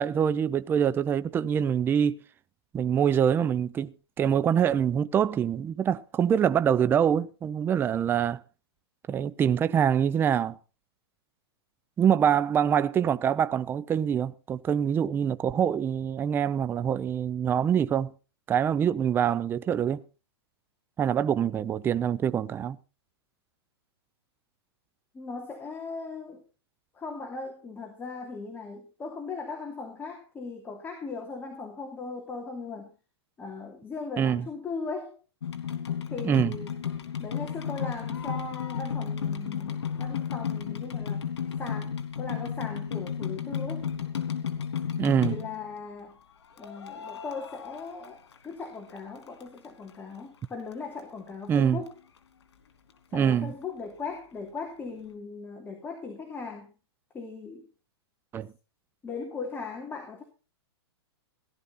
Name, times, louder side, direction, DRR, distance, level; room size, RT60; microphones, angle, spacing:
voice 1, 0.0-2.2 2.7-8.4 9.1-10.6 12.0-18.1 18.5-20.0 21.0-22.8 34.2-34.4 36.2-36.5 45.0-45.4 51.5-51.8 53.1-53.5 58.3-58.5, right 8 dB, 15° right, 0.6 m, -25 dB
voice 2, 25.1-26.4 26.9-32.9 33.4-35.2 36.1-36.8 37.2-41.3 41.6-43.9 45.2-46.2 46.6-51.9 53.1-56.7 57.1-57.6 59.0-60.2, left 4 dB, 15° left, 3.0 m, -38 dB
sound 1, 35.4-45.7 46.6-48.7 49.0-49.9 50.4-50.5 50.7-50.8 51.0-51.1 51.6-51.7 51.9-52.0, left 7 dB, 80° left, 3.5 m, -33 dB
17.5 x 12.0 x 4.2 m
hypercardioid pair, 140°, 14 cm